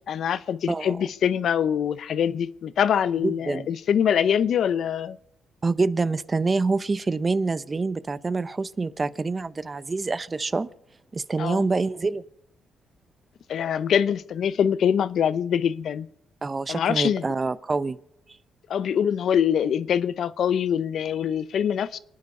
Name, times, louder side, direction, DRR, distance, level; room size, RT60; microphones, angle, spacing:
voice 1, 0.1-5.2 11.4-11.7 13.5-16.1 16.7-17.3 18.7-22.0, left 8 dB, 65° left, 0.7 m, -24 dB
voice 2, 3.2-3.7 5.6-10.7 11.1-12.2 16.4-18.0, right 3 dB, 25° right, 0.7 m, -26 dB
28.0 x 9.5 x 5.5 m
cardioid pair, 90°, 0 cm